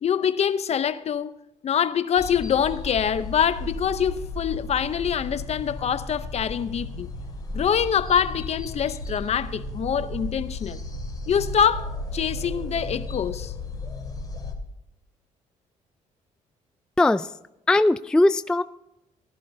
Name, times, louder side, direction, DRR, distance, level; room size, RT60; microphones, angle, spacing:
voice 1, 0.0-1.3 1.6-7.1 7.5-10.8 11.3-13.5, left 8 dB, 50° left, 0.7 m, -25 dB
sound 1, 2.2-14.5, left 2 dB, 25° left, 2.3 m, -34 dB
voice 2, 17.0-17.3 17.7-18.6, left 2 dB, 5° left, 0.3 m, -19 dB
18.5 x 11.0 x 2.7 m
cardioid pair, 90°, 14 cm